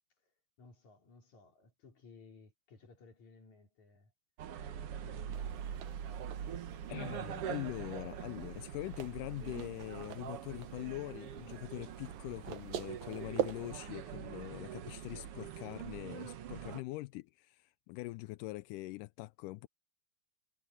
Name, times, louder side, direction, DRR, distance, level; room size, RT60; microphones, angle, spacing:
voice 1, 0.6-4.1 5.0-5.6, left 4 dB, 55° left, 5.3 m, -58 dB
sound 1, 4.4-16.8, right 9 dB, 65° right, 1.5 m, -44 dB
sound 2, 5.3-13.7, right 11 dB, 80° right, 3.0 m, -45 dB
voice 2, 6.9-19.7, left 20 dB, 80° left, 2.0 m, -43 dB
omnidirectional pair, 3.9 m